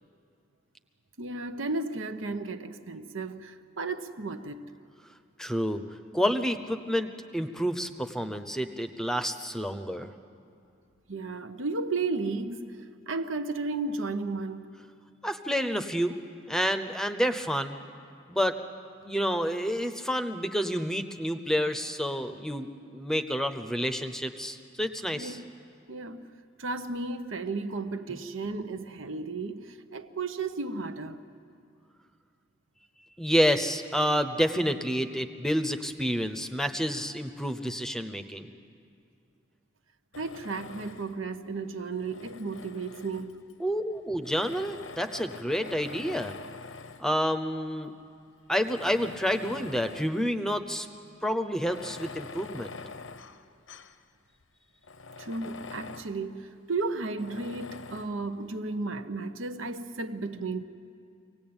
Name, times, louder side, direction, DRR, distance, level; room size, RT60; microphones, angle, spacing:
voice 1, 1.2-4.7 11.1-14.7 25.1-25.4 25.9-26.2 26.6-31.2 40.2-43.4 55.2-60.6, right 3 dB, 85° right, 1.1 m, -34 dB
voice 2, 5.4-5.8 6.1-10.1 15.2-16.2 16.5-17.8 18.3-18.6 19.0-25.4 33.2-38.5 43.6-46.3 47.0-47.9 48.5-50.9 51.2-52.7, equal, 5° left, 0.7 m, -29 dB
Tools, 40.1-41.3 41.9-43.5 44.2-47.1 47.8-47.9 48.5-50.2 50.6-50.7 51.6-54.0 54.4-54.5 54.8-56.2 57.2-58.2, left 4 dB, 80° left, 0.9 m, -45 dB
24.5 x 18.5 x 8.8 m
head